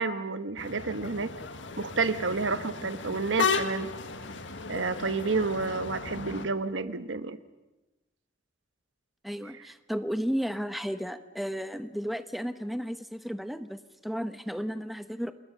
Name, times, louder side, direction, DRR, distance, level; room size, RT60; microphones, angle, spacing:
voice 1, 0.0-1.3 1.8-3.9 4.7-7.4, right 4 dB, 80° right, 12 dB, 1.2 m, -30 dB
sound 1, 0.6-6.5, left 5 dB, 75° left, 1.8 m, -34 dB
voice 2, 9.2-15.3, equal, ahead, 10 dB, 0.9 m, -33 dB
29.0 x 20.5 x 6.8 m, 1.0 s
head